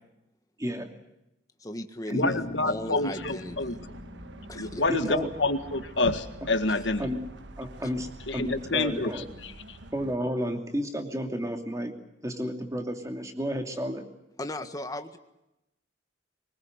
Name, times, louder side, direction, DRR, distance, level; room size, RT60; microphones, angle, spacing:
voice 1, 0.6-0.9 2.1-2.3 4.9-5.3 7.0-7.2 7.6-9.3 9.9-11.9 12.2-14.0, equal, 15° right, 4 dB, 2.7 m, -31 dB
voice 2, 1.6-3.8 4.5-4.8 6.7-6.8 14.4-15.2, left 1 dB, 20° left, 7 dB, 1.6 m, -38 dB
voice 3, 2.1-3.8 4.6-7.1 8.3-9.8, left 2 dB, 70° left, 8 dB, 1.9 m, -28 dB
Bass guitar, 2.2-6.3, left 1 dB, 45° left, 2.2 m, -44 dB
sound 1, 3.2-10.2, right 1 dB, 65° right, 1.3 m, -44 dB
24.0 x 20.5 x 8.1 m, 0.89 s
head